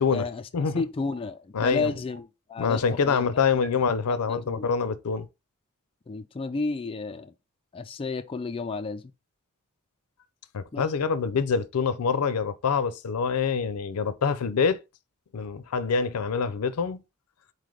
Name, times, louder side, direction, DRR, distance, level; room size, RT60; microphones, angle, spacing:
voice 1, 0.1-0.5 0.7-3.3 4.1-4.7 6.1-7.3 7.7-9.1 10.7-10.9, left 4 dB, 25° left, 0.3 m, -32 dB
sound 1, 0.6-0.7 1.1-1.2 1.6-1.7 2.1-2.2 2.6-2.7 3.1-3.2 3.6-3.7 4.1-4.2 4.6-4.7 5.1-5.2, right 4 dB, 50° right, 0.8 m, -45 dB
voice 2, 1.5-1.9 2.6-5.3 10.5-14.8 15.3-17.0, left 5 dB, 90° left, 0.5 m, -25 dB
4.1 x 3.3 x 3.7 m
head